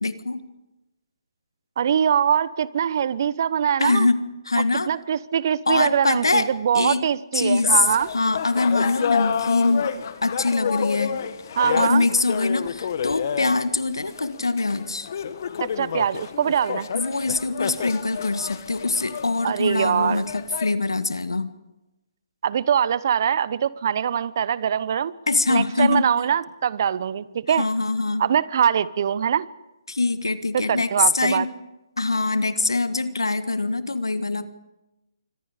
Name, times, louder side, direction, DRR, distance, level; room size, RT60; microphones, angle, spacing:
voice 1, 0.0-0.4 3.8-4.9 5.7-6.5 6.7-7.0 7.3-7.8 8.1-9.9 10.2-11.1 11.8-15.1 16.9-21.5 25.3-26.1 27.6-28.2 29.9-31.5 32.0-34.5, left 3 dB, 85° left, 12 dB, 1.6 m, -23 dB
voice 2, 1.8-4.1 4.9-8.1 11.6-12.0 15.6-16.9 19.4-20.3 22.4-25.1 25.5-27.7 28.2-29.5 30.5-31.5, right 8 dB, 50° right, 19 dB, 0.9 m, -23 dB
sound 1, 7.5-20.7, left 7 dB, 50° left, 1.5 m, -30 dB
27.0 x 25.0 x 5.1 m, 0.99 s
figure-of-eight pair, 140°, 2 cm